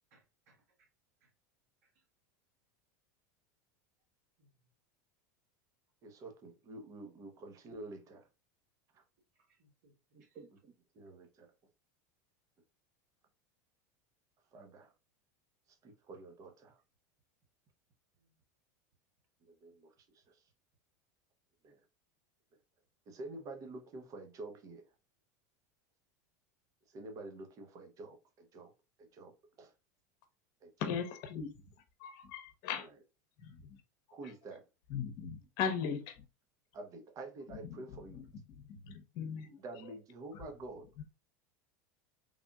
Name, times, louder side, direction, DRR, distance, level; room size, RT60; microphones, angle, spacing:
voice 1, 0.1-0.9 1.2-1.3 1.8-2.0 4.4-4.7 9.3-10.4 18.2-18.4, right 2 dB, 80° right, 1.3 m, -72 dB
voice 2, 6.0-8.3 8.9-9.0 10.1-11.5 14.5-14.9 15.8-16.8 19.5-20.4 21.6-21.8 23.1-24.8 26.9-28.7 29.0-29.7 30.6-30.9 34.1-34.6 36.7-38.3 39.6-41.0, right 2 dB, 40° right, 0.9 m, -49 dB
voice 3, 30.8-31.6 32.0-32.9 33.4-33.8 34.9-36.2 37.6-38.2 38.5-39.6, left 7 dB, 60° left, 0.9 m, -39 dB
3.5 x 2.5 x 2.3 m
supercardioid pair, 115°, 9 cm